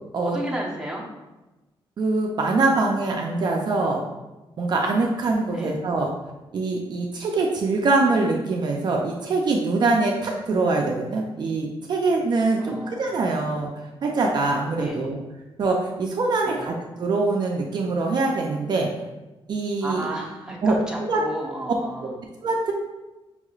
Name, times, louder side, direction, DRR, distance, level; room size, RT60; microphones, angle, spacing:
voice 1, 0.2-1.0 5.5-5.8 12.6-13.0 13.3-13.4 14.8-15.1 16.4-16.7 19.8-22.2, right 1 dB, 5° right, -3 dB, 0.7 m, -33 dB
voice 2, 2.0-4.0 4.6-6.1 6.5-13.7 14.0-15.2 15.6-18.9 19.5-20.1 20.6-21.2 22.0-22.1 22.4-22.7, right 3 dB, 50° right, 0 dB, 0.4 m, -23 dB
5.3 x 3.0 x 2.4 m, 1.1 s
wide cardioid pair, 140°, 10 cm